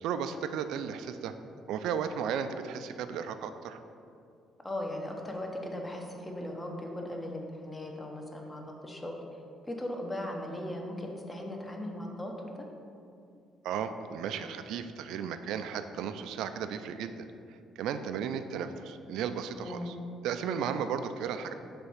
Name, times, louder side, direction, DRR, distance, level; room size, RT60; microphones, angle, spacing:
voice 1, 0.0-1.3 1.7-3.8 13.6-17.3 17.8-19.9 20.2-21.5, right 7 dB, 80° right, 9 dB, 0.3 m, -34 dB
voice 2, 4.6-9.2 9.7-12.5 19.6-19.9, left 1 dB, 15° left, 2 dB, 0.8 m, -38 dB
5.7 x 3.5 x 5.6 m, 2.5 s
cardioid pair, 105°, 0 cm